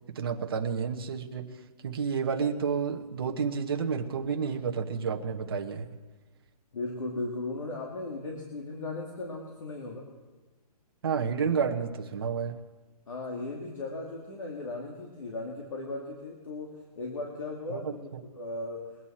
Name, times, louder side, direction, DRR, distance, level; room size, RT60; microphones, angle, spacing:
voice 1, 0.1-1.5 1.8-5.9 11.0-12.5 17.7-17.9, right 6 dB, 35° right, 2 dB, 1.0 m, -30 dB
voice 2, 6.7-10.1 13.1-18.8, left 2 dB, 55° left, -1 dB, 2.5 m, -37 dB
22.5 x 9.0 x 4.3 m, 1.2 s
hypercardioid pair, 175°, 20 cm